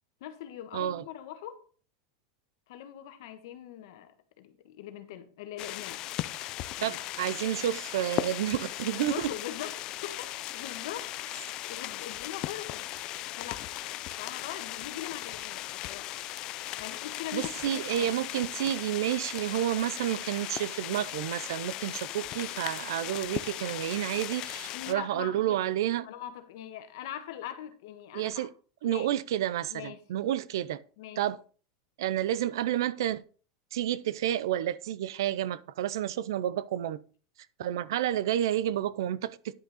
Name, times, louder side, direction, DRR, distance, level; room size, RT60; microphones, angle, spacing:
voice 1, 0.2-1.6 2.7-6.0 6.8-7.0 8.9-11.1 11.7-12.8 13.4-13.7 14.2-16.1 16.8-18.1 24.7-25.6 26.0-28.5 28.8-29.1 29.7-30.0 31.0-31.2, left 11 dB, 60° left, 1.3 m, -42 dB
voice 2, 0.7-1.0 6.8-9.3 17.3-26.1 28.1-28.5 28.8-30.8 31.2-31.4 32.0-33.2 33.7-37.0 37.6-39.5, right 12 dB, 80° right, 0.6 m, -30 dB
sound 1, 5.6-24.9, left 15 dB, 30° left, 0.4 m, -37 dB
10.0 x 6.2 x 4.1 m
supercardioid pair, 170°, 2 cm